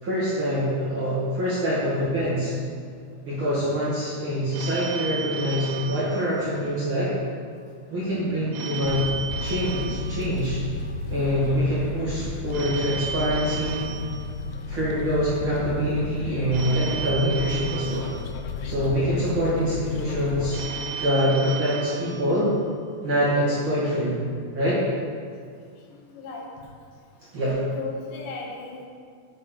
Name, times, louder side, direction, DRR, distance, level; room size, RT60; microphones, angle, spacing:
voice 1, 0.0-2.5 3.2-7.1 7.9-9.1 9.4-10.6 11.1-13.8 14.7-18.1 18.6-20.6 21.0-22.5 23.0-24.2 24.5-24.8 27.3-27.6, equal, 40° right, -10 dB, 1.8 m, -25 dB
Telephone, 4.5-7.0 8.5-11.0 12.5-15.0 16.5-19.0 20.5-23.0, right 6 dB, 80° right, 3.0 m, -35 dB
sound 1, 8.8-20.7, left 4 dB, 80° left, 2.8 m, -33 dB
voice 2, 25.9-26.5 27.6-28.9, left 4 dB, 65° left, -2 dB, 2.3 m, -36 dB
8.4 x 6.0 x 6.2 m, 2.2 s
omnidirectional pair, 5.4 m